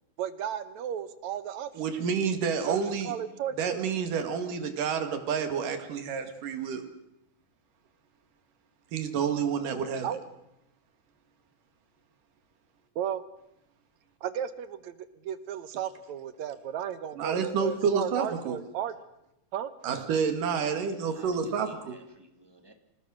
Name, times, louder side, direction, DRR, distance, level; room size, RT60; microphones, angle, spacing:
voice 1, 0.2-1.8 2.6-3.9 10.0-10.2 13.0-13.2 14.2-18.9 19.5-19.7, right 9 dB, 70° right, 13 dB, 2.1 m, -34 dB
voice 2, 1.8-3.1 3.6-6.8 8.9-10.1 17.2-18.6 19.8-22.0, right 6 dB, 90° right, 7 dB, 3.6 m, -29 dB
voice 3, 20.5-22.7, right 1 dB, 10° right, 5 dB, 1.6 m, -53 dB
26.0 x 18.5 x 6.4 m, 0.85 s
omnidirectional pair, 3.6 m